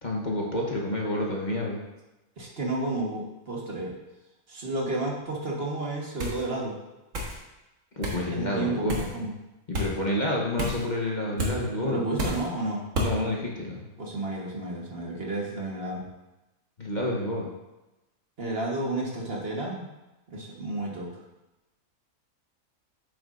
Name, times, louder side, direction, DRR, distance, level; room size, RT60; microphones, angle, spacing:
voice 1, 0.0-1.8 8.0-9.2 9.7-12.0 13.0-13.8 16.8-17.5, left 1 dB, 35° left, -2 dB, 1.0 m, -29 dB
voice 2, 2.4-3.9 4.5-6.8 8.3-9.3 11.8-12.8 14.0-16.0 18.4-19.9 20.3-21.1, right 2 dB, 45° right, -2 dB, 1.6 m, -31 dB
sound 1, 6.2-6.4 7.1-7.4 8.0-8.2 8.9-9.1 9.7-9.9 10.6-10.8 11.4-11.6 12.2-12.5 12.9-13.1, equal, 65° right, 1.7 m, -29 dB
8.6 x 7.0 x 2.6 m, 1.0 s
omnidirectional pair, 1.5 m